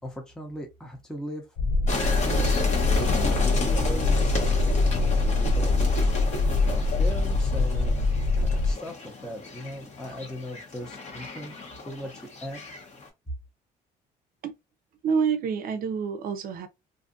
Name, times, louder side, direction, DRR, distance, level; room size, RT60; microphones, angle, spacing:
voice 1, 0.0-1.5 1.8-2.5 3.0-6.1 6.6-8.9 9.2-11.6 11.8-12.1 12.4-12.6, equal, 5° left, 0.6 m, -39 dB
sound 1, 1.6-8.7, left 3 dB, 65° left, 0.5 m, -23 dB
sound 2, 1.9-13.1, left 3 dB, 45° left, 1.0 m, -33 dB
voice 2, 15.0-16.7, right 6 dB, 60° right, 0.5 m, -27 dB
2.5 x 2.5 x 2.5 m
cardioid pair, 110°, 17 cm